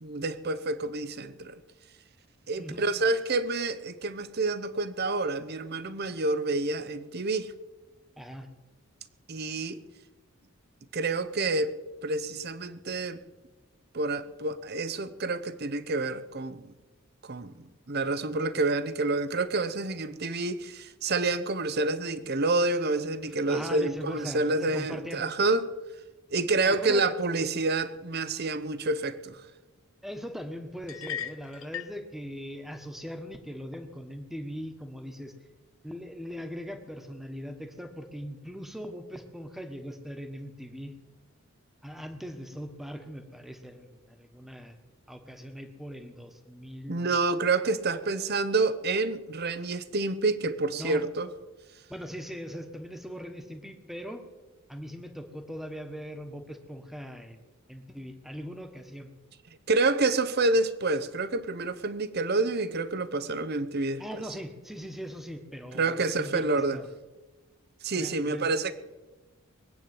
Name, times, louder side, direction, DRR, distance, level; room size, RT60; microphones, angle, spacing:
voice 1, 0.0-1.6 2.5-7.5 9.3-9.8 10.9-13.2 13.9-16.7 17.2-25.7 26.3-29.4 46.9-51.3 59.7-64.2 65.7-66.8 67.8-68.7, right 3 dB, 50° right, 0.9 m, -28 dB
voice 2, 2.6-2.9 8.2-8.5 23.5-25.2 26.6-27.1 30.0-35.3 35.8-40.9 41.8-44.8 45.1-47.1 50.8-51.0 51.9-54.2 54.7-57.4 57.7-59.1 64.0-66.9 68.0-68.5, equal, ahead, 1.4 m, -40 dB
sound 1, 30.9-32.0, left 9 dB, 65° left, 0.7 m, -37 dB
21.5 x 8.6 x 7.8 m
head